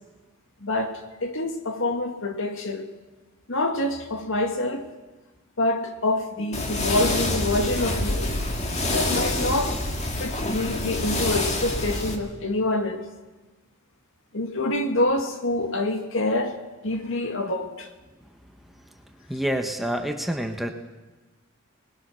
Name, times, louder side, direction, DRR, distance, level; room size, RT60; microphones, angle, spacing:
voice 1, 0.6-2.9 3.5-4.9 5.6-8.4 8.9-9.8 10.2-13.1 14.3-16.6 16.8-17.9, left 2 dB, 65° left, 1.9 m, -26 dB
sound 1, 6.5-12.2, left 2 dB, 30° left, 2.0 m, -27 dB
voice 2, 19.3-20.7, equal, ahead, 1.0 m, -27 dB
20.5 x 20.0 x 6.3 m
head